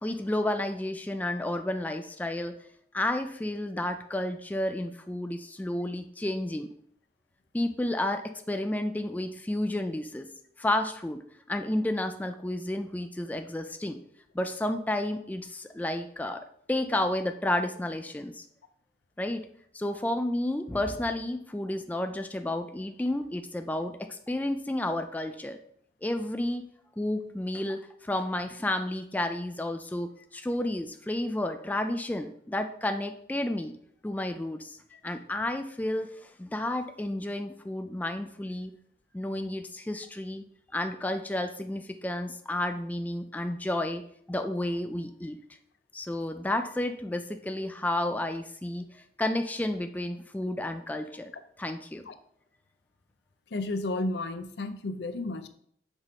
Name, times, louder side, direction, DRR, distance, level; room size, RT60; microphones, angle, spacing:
voice 1, 0.0-2.6 2.9-6.7 7.5-10.3 10.6-14.0 14.3-18.4 19.2-19.4 19.7-25.6 26.0-26.7 27.0-33.7 34.0-34.8 35.0-38.7 39.1-40.4 40.7-45.4 45.9-51.3 51.6-52.0, left 1 dB, 10° left, 7 dB, 0.3 m, -31 dB
voice 2, 53.5-55.5, left 2 dB, 80° left, 10 dB, 0.6 m, -32 dB
6.0 x 3.5 x 5.3 m, 0.65 s
head